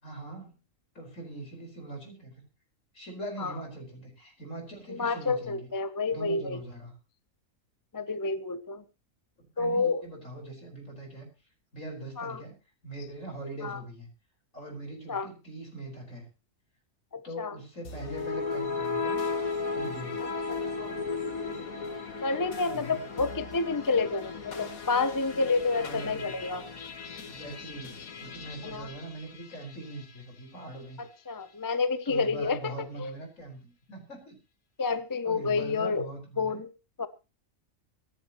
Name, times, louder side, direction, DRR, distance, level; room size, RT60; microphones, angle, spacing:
voice 1, 0.0-0.6 1.0-2.4 2.9-5.7 6.1-7.0 9.4-11.3 11.7-12.6 12.8-14.1 14.5-16.3 17.2-19.2 19.7-20.2 22.7-23.0 25.7-26.4 27.1-31.0 32.1-34.4 35.2-36.6, right 2 dB, 65° left, 5.2 m, -42 dB
voice 2, 4.9-6.6 7.9-8.8 9.6-10.0 12.2-12.4 13.6-13.8 15.1-15.3 17.1-17.6 20.5-21.0 22.2-26.6 28.6-28.9 31.0-32.7 33.0-33.1 34.8-36.1 36.4-36.7 37.0-37.1, left 4 dB, 25° left, 0.5 m, -29 dB
sound 1, 17.8-30.2, left 4 dB, 85° left, 1.9 m, -36 dB
24.5 x 10.0 x 3.0 m
omnidirectional pair, 1.4 m